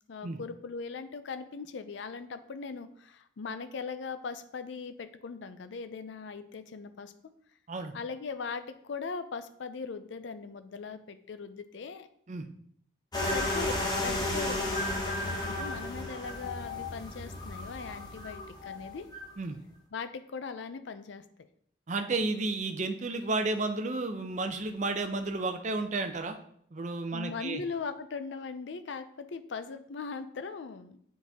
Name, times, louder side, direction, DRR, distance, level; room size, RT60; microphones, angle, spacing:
voice 1, 0.1-7.1 7.9-12.1 13.3-19.1 19.9-21.2 27.1-31.0, left 5 dB, 70° left, 10 dB, 0.5 m, -40 dB
sound 1, 13.1-19.3, left 2 dB, 20° left, 1.0 m, -33 dB
voice 2, 21.9-26.4 26.7-27.6, right 3 dB, 40° right, 7 dB, 0.5 m, -32 dB
7.2 x 4.1 x 3.5 m, 0.67 s
head